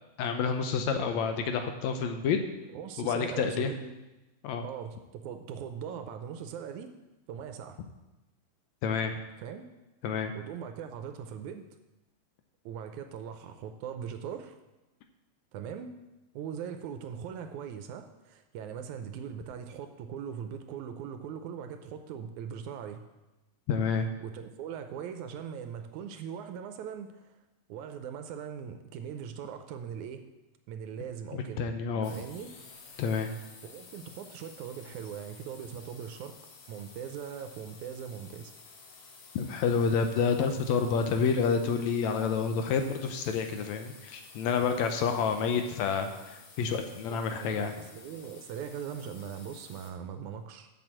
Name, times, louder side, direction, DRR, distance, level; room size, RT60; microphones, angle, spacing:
voice 1, 0.2-2.4 3.0-3.7 4.4-4.6 8.8-9.1 10.0-10.3 23.7-24.1 31.3-32.1 33.0-33.3 39.4-47.7, left 6 dB, 75° left, 6 dB, 1.7 m, -29 dB
voice 2, 0.9-1.2 2.7-3.9 4.6-6.9 7.3-7.8 9.4-9.7 10.3-11.7 12.7-14.6 15.5-15.9 16.3-23.0 24.2-27.4 27.7-30.3 30.7-31.7 32.0-32.5 33.6-36.4 36.7-38.5 47.1-50.7, right 8 dB, 80° right, 8 dB, 1.8 m, -40 dB
sound 1, 32.0-49.9, left 4 dB, 60° left, 2.0 m, -52 dB
7.1 x 6.1 x 7.5 m, 1.0 s
omnidirectional pair, 3.7 m